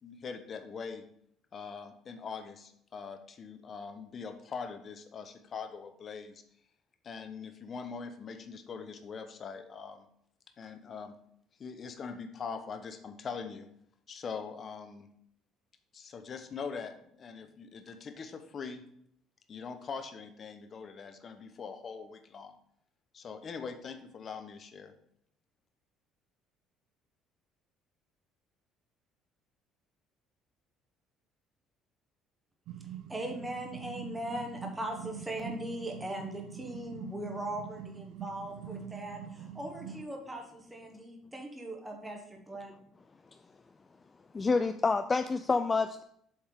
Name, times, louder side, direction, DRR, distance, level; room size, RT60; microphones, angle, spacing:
voice 1, 0.0-1.0 1.5-6.4 7.0-10.1 10.6-11.1 11.6-13.7 14.1-15.1 15.9-18.8 19.5-22.5 23.1-24.9, left 5 dB, 40° left, 7 dB, 0.8 m, -42 dB
sound 1, 32.7-40.0, right 8 dB, 70° right, 0.4 m, -44 dB
voice 2, 33.1-42.7, right 1 dB, 10° right, 2 dB, 1.4 m, -39 dB
voice 3, 44.3-46.0, left 4 dB, 25° left, 8 dB, 0.3 m, -28 dB
7.3 x 3.5 x 4.9 m, 0.70 s
cardioid pair, 100°, 0 cm